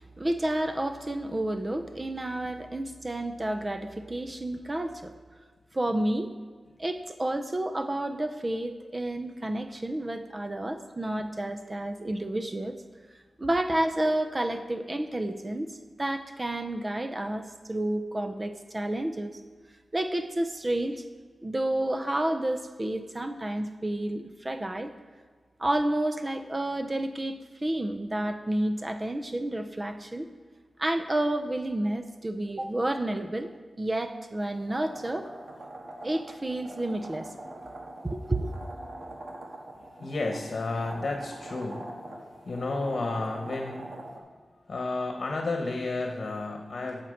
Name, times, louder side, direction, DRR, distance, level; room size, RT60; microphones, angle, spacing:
voice 1, 0.0-5.1 5.7-6.3 6.8-12.8 13.4-19.4 19.9-21.0 21.4-24.9 25.6-30.3 30.8-33.5 33.8-35.3 36.0-37.3 38.0-38.5, right 1 dB, 25° right, 8 dB, 0.6 m, -30 dB
sound 1, 34.5-44.2, right 1 dB, 60° right, 1.5 m, -43 dB
voice 2, 39.8-43.9 44.6-47.0, left 3 dB, 55° left, 2 dB, 1.1 m, -32 dB
13.0 x 4.4 x 6.4 m, 1.5 s
wide cardioid pair, 80°, 0 cm